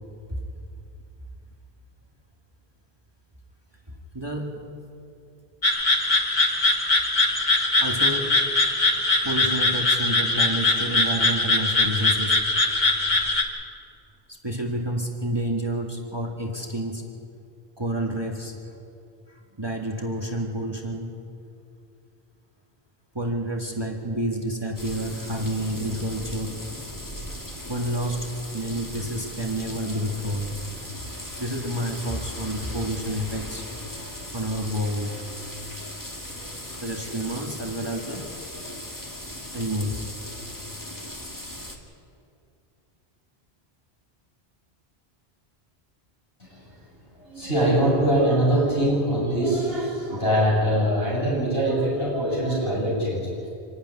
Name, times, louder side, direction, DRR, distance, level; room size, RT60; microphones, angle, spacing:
voice 1, 4.1-4.5 7.8-8.4 9.2-12.4 14.3-17.0 17.8-18.6 19.3-21.1 23.1-26.8 27.7-30.8 31.4-33.7 34.3-35.1 36.8-38.3 39.5-40.1, right 1 dB, 25° right, 1 dB, 1.8 m, -29 dB
sound 1, 5.6-13.4, left 2 dB, 45° left, 1.8 m, -22 dB
sound 2, 24.7-41.8, left 1 dB, 20° left, 2.1 m, -38 dB
voice 2, 46.4-53.5, right 1 dB, 65° left, -5 dB, 7.9 m, -23 dB
26.5 x 11.5 x 9.8 m, 2.5 s
omnidirectional pair, 1.1 m